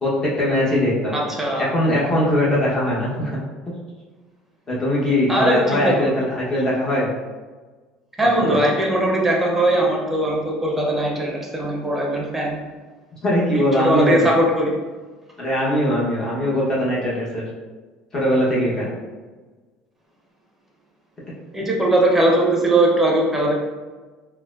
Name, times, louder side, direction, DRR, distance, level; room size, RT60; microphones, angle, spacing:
voice 1, 0.0-1.2 1.6-3.4 3.7-3.8 4.7-7.1 8.4-8.6 13.2-14.3 15.4-17.4 18.1-18.9, left 1 dB, 25° left, -6 dB, 1.2 m, -21 dB
voice 2, 1.1-1.7 5.3-6.1 8.2-12.6 13.5-14.8 21.5-23.5, right 1 dB, 10° right, -1 dB, 0.8 m, -20 dB
3.9 x 2.2 x 2.5 m, 1.4 s
supercardioid pair, 100°, 2 cm